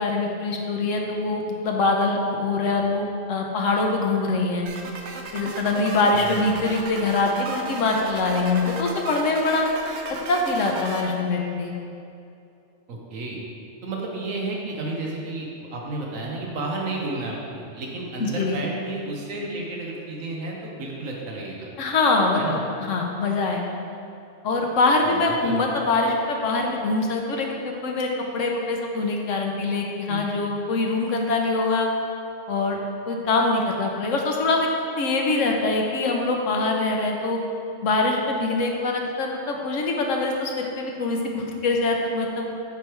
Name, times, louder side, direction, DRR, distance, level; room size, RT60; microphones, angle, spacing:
voice 1, 0.0-4.7 5.3-9.7 10.3-11.7 18.2-18.6 21.8-22.4 22.8-23.6 24.4-31.9 32.5-32.8 33.1-34.7 35.0-37.4 37.8-42.5, left 3 dB, 75° left, 1 dB, 1.1 m, -24 dB
sound 1, 4.7-11.0, right 3 dB, 65° right, 0.9 m, -35 dB
voice 2, 6.1-6.4 12.9-13.4 13.8-21.7 22.4-22.6 25.0-25.7 30.1-30.2, right 2 dB, 85° right, -1 dB, 1.4 m, -32 dB
8.8 x 3.3 x 4.5 m, 2.6 s
omnidirectional pair, 1.3 m